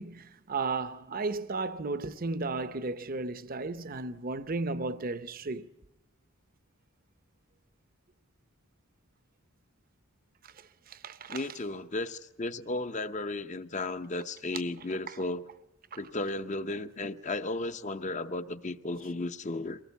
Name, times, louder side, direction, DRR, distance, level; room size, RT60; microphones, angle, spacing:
voice 1, 0.0-5.7 10.4-11.5 15.1-15.2 15.9-16.0, right 3 dB, 40° right, 0.8 m, -34 dB
voice 2, 11.3-15.4 16.0-19.8, left 2 dB, 35° left, 0.8 m, -34 dB
23.0 x 18.5 x 8.2 m
head